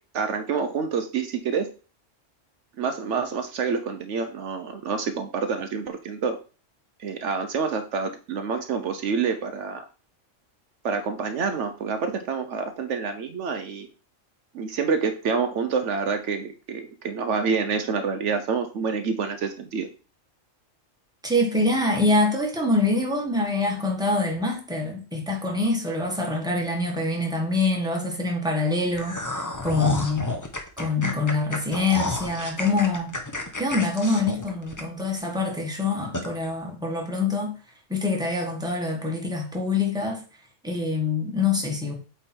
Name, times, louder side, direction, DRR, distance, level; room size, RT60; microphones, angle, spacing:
voice 1, 0.1-1.7 2.8-6.4 7.0-9.8 10.8-13.9 14.5-19.9, right 5 dB, 70° right, 1.0 m, -27 dB
voice 2, 21.2-30.2 30.8-33.1 33.6-37.6 37.9-40.2 40.6-41.9, left 2 dB, 5° right, 1.4 m, -25 dB
sound 1, 28.9-35.2 35.6-35.7 36.1-36.3, left 2 dB, 20° left, 0.7 m, -31 dB
8.2 x 3.5 x 4.3 m
omnidirectional pair, 1.3 m